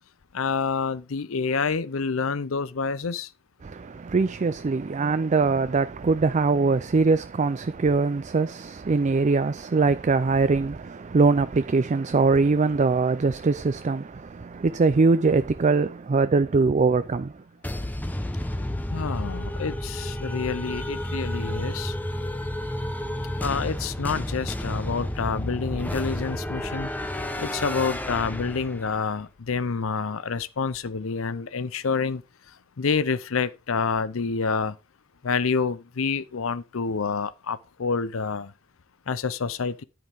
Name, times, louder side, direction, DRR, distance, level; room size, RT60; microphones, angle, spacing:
voice 1, 0.3-3.3 18.9-21.9 23.4-26.9 27.4-32.2 32.5-34.8 35.2-38.5 39.1-39.8, left 5 dB, 70° left, 0.6 m, -28 dB
voice 2, 3.6-17.3, right 4 dB, 35° right, 0.4 m, -22 dB
sound 1, 17.6-29.0, left 1 dB, 10° left, 1.0 m, -31 dB
9.9 x 9.0 x 3.5 m
head